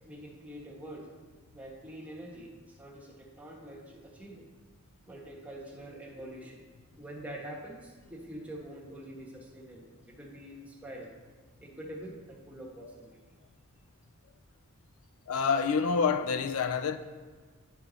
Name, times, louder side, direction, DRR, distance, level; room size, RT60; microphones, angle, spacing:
voice 1, 0.1-1.1 1.5-2.5 2.8-4.4 5.1-6.6 7.0-11.1 11.6-13.1, right 1 dB, 5° right, 1.2 m, -45 dB
voice 2, 15.3-17.0, left 5 dB, 80° left, 0.4 m, -27 dB
9.6 x 4.6 x 3.9 m
head